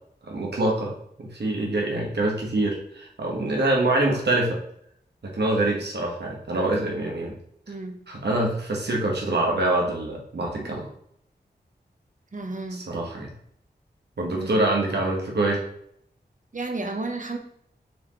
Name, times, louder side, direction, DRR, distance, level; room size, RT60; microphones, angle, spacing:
voice 1, 0.3-0.9 1.2-4.6 5.2-7.3 8.1-10.9 12.7-13.3 14.2-15.6, right 2 dB, 70° right, -2 dB, 1.7 m, -25 dB
voice 2, 7.7-8.0 12.3-12.8 14.3-14.6 16.5-17.4, right 3 dB, 45° right, 4 dB, 1.1 m, -32 dB
6.5 x 4.8 x 3.2 m, 0.70 s
wide cardioid pair, 75°, 18 cm